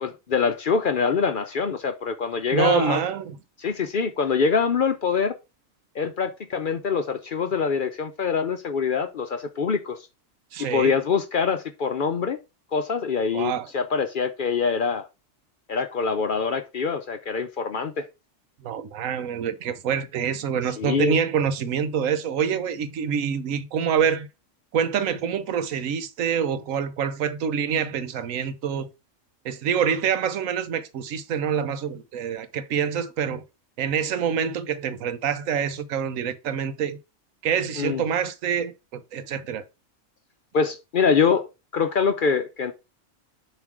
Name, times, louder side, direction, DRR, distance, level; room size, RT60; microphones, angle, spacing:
voice 1, 0.0-3.0 3.6-5.3 5.9-10.0 10.6-12.4 12.7-15.1 15.7-18.1 20.8-21.2 37.8-38.0 40.5-42.7, left 5 dB, 55° left, 0.6 m, -24 dB
voice 2, 2.5-3.4 10.5-10.9 13.3-13.7 18.6-24.3 24.7-28.9 29.4-33.4 33.8-37.0 37.4-39.6, right 7 dB, 90° right, 1.1 m, -26 dB
7.2 x 3.1 x 4.7 m
omnidirectional pair, 1.3 m